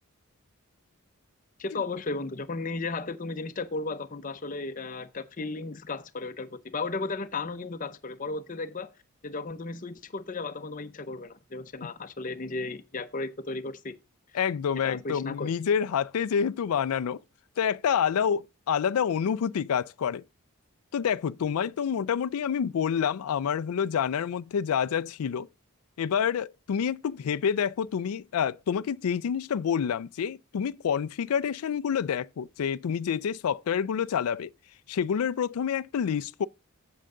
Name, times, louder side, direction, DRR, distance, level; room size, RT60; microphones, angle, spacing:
voice 1, 1.6-8.9 9.2-13.9 14.8-15.5, left 3 dB, 35° left, 0.6 m, -35 dB
voice 2, 14.3-17.2 17.6-20.2 20.9-25.5 26.0-34.5 34.9-36.5, left 7 dB, 85° left, 0.4 m, -28 dB
7.7 x 7.5 x 3.7 m
head